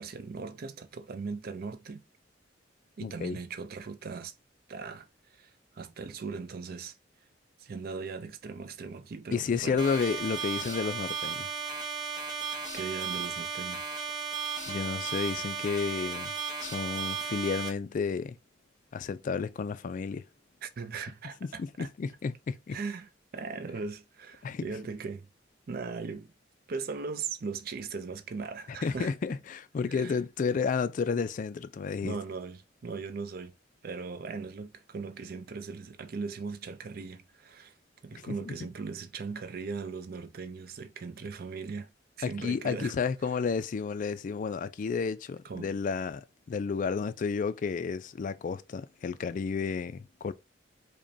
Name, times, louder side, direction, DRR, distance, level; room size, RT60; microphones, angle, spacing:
voice 1, 0.0-2.0 3.0-4.3 4.7-7.0 7.6-9.8 12.7-13.9 20.6-21.9 22.7-25.3 25.7-26.3 26.7-29.1 29.9-30.2 32.0-33.5 33.8-37.7 38.0-41.9 42.2-43.0 43.2-43.3 45.4-45.7, right 4 dB, 55° right, 0.4 m, -39 dB
voice 2, 3.0-3.4 9.3-11.5 14.7-16.3 16.6-18.4 18.9-20.2 21.4-22.8 24.4-24.6 28.8-32.2 38.1-38.5 42.2-50.3, left 5 dB, 45° left, 0.3 m, -31 dB
sound 1, 9.8-17.7, right 5 dB, 25° right, 0.8 m, -35 dB
5.0 x 2.2 x 2.6 m
head